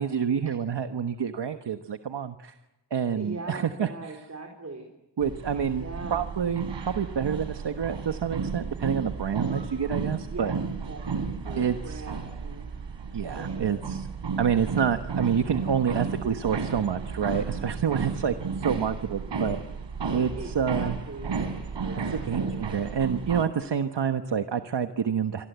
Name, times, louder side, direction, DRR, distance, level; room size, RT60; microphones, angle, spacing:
voice 1, 0.0-2.6 2.9-4.3 5.2-5.8 6.1-10.5 11.6-12.1 13.1-14.1 14.4-19.6 20.1-21.0 22.1-25.4, right 7 dB, 70° right, 8 dB, 1.3 m, -28 dB
voice 2, 3.2-4.9 5.8-6.2 10.3-10.5 10.8-11.0 11.4-12.7 13.3-13.8 20.4-21.4 21.8-22.3, right 3 dB, 40° right, 2 dB, 4.4 m, -40 dB
sound 1, 5.2-23.5, right 5 dB, 90° right, 3.9 m, -33 dB
28.0 x 24.5 x 8.2 m, 0.95 s
wide cardioid pair, 115°, 43 cm